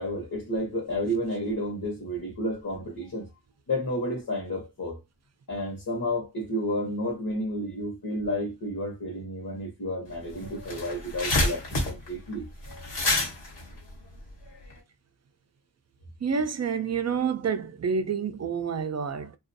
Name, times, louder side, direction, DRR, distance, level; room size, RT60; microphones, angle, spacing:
voice 1, 0.0-3.3 3.7-5.0 5.5-12.5, equal, 50° left, 1.0 m, -31 dB
sound 1, 10.1-10.2 10.5-14.7, left 2 dB, 75° left, 1.2 m, -28 dB
voice 2, 16.2-19.4, right 6 dB, 40° right, 0.4 m, -28 dB
2.4 x 2.3 x 2.6 m
cardioid pair, 60°, 43 cm